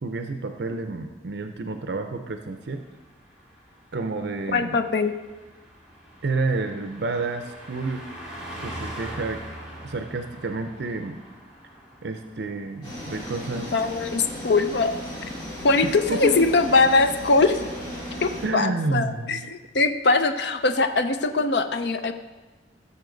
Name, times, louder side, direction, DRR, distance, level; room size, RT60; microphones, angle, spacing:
voice 1, 0.0-2.8 3.9-4.8 6.2-8.1 8.6-9.4 9.8-11.2 12.0-13.7 15.8-16.4 18.4-19.4, right 3 dB, 70° right, 6 dB, 0.6 m, -29 dB
Car passing by, 2.6-14.5 14.8-15.0, equal, 5° right, 2.1 m, -43 dB
voice 2, 4.5-5.1 13.7-14.9 15.6-17.8 18.2-22.1, left 3 dB, 65° left, 9 dB, 0.6 m, -22 dB
sound 1, 12.8-18.5, equal, 25° left, 3.7 m, -36 dB
15.5 x 6.9 x 3.9 m, 1.3 s
head